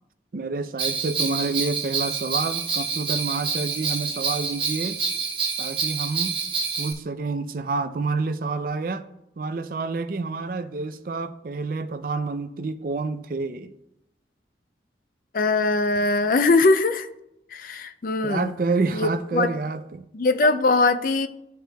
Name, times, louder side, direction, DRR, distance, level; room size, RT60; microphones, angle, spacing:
voice 1, 0.3-5.0 5.6-6.3 6.8-9.0 9.4-13.7 18.2-20.0, right 3 dB, 50° right, 0.4 m, -28 dB
Bell, 0.8-6.9, right 5 dB, 30° right, 0.8 m, -27 dB
voice 2, 15.3-17.1 17.5-18.5 18.9-19.5 20.1-21.3, left 3 dB, 50° left, 0.4 m, -21 dB
11.5 x 4.8 x 2.2 m
head